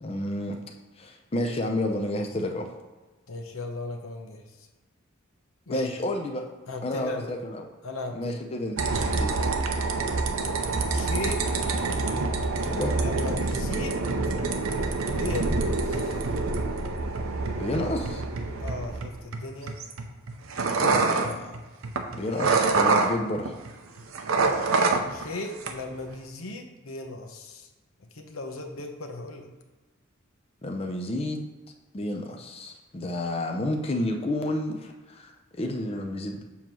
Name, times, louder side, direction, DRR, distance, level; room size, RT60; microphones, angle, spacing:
voice 1, 0.0-0.6 1.0-2.7 5.7-6.5 6.8-7.7 8.1-8.8 9.2-9.4 12.7-12.9 17.5-18.2 20.7-21.5 22.1-23.5 30.6-31.5 31.9-36.4, left 1 dB, 30° left, 3 dB, 0.5 m, -30 dB
voice 2, 3.3-4.4 5.7-5.9 6.7-7.3 7.8-8.4 10.9-11.5 12.9-14.0 15.1-16.3 18.6-19.8 25.1-27.7 28.0-29.5, left 2 dB, 85° left, 4 dB, 0.9 m, -37 dB
sound 1, 8.8-23.7 24.0-25.3 25.6-26.1, right 3 dB, 85° right, 0.7 m, -26 dB
7.2 x 3.0 x 6.0 m, 1.2 s
head